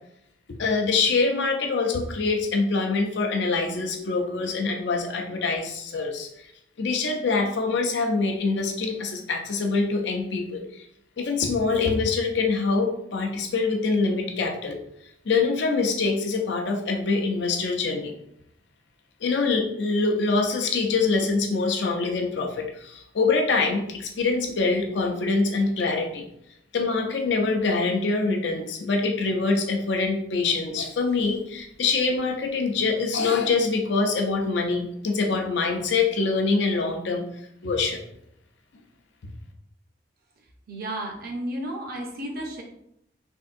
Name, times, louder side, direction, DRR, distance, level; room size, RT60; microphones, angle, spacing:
voice 1, 0.6-6.5 6.8-10.8 11.2-14.8 15.2-18.1 19.2-26.3 26.7-37.2 37.6-38.0, left 4 dB, 65° left, 3 dB, 0.5 m, -24 dB
voice 2, 40.7-42.6, right 1 dB, 55° right, 1 dB, 0.6 m, -32 dB
3.5 x 2.6 x 2.5 m, 0.76 s
head